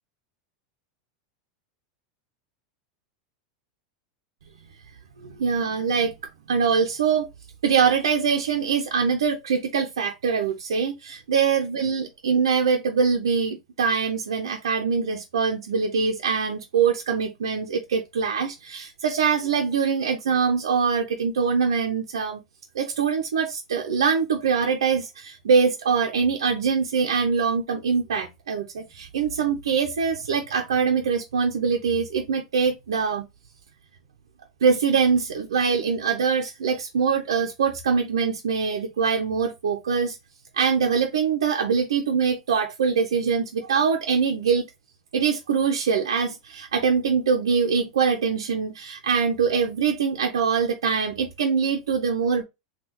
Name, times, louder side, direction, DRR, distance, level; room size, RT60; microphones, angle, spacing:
voice 1, 5.2-6.1 6.5-7.3 7.6-22.4 22.7-33.2 34.6-40.2 40.5-44.7 45.1-52.4, right 6 dB, 80° right, 0.5 m, -23 dB
3.6 x 2.3 x 2.8 m
hypercardioid pair, 95°, 3 cm